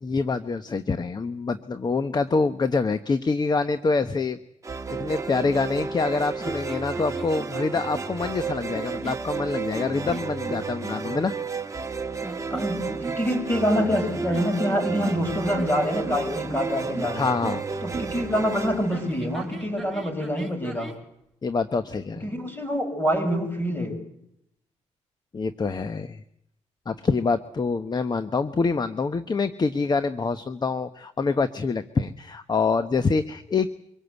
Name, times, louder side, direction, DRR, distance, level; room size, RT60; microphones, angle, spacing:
voice 1, 0.0-4.4 4.9-11.3 17.1-17.6 21.4-22.3 25.3-26.2 26.9-33.7, left 4 dB, 35° left, 11 dB, 1.0 m, -26 dB
sound 1, 4.6-19.9, right 5 dB, 25° right, 1.5 m, -32 dB
sound 2, 6.4-8.1 8.7-9.3 9.7-11.0 12.2-13.4 13.7-18.3 18.9-21.0, right 2 dB, ahead, 4.3 m, -38 dB
voice 2, 12.5-17.3 17.8-20.9 22.2-24.0, equal, 15° left, 5 dB, 6.6 m, -26 dB
25.0 x 18.0 x 8.2 m, 0.79 s
cardioid pair, 80°, 12 cm